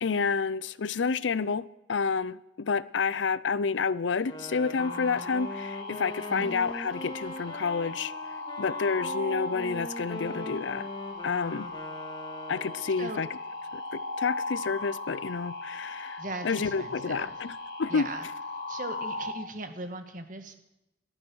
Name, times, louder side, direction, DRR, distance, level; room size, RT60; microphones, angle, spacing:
voice 1, 0.0-8.1 8.6-10.9 11.2-11.7 12.5-13.3 13.7-17.5 17.8-18.1, left 5 dB, 85° left, 0.6 m, -29 dB
Wind instrument woodwind instrument, 4.1-13.1, left 1 dB, 25° left, 2.1 m, -42 dB
sound 1, 4.8-19.3, left 2 dB, 60° left, 3.5 m, -38 dB
voice 2, 16.2-17.3 17.9-18.3 18.7-20.6, right 2 dB, 45° right, 1.8 m, -39 dB
17.5 x 13.0 x 6.3 m
head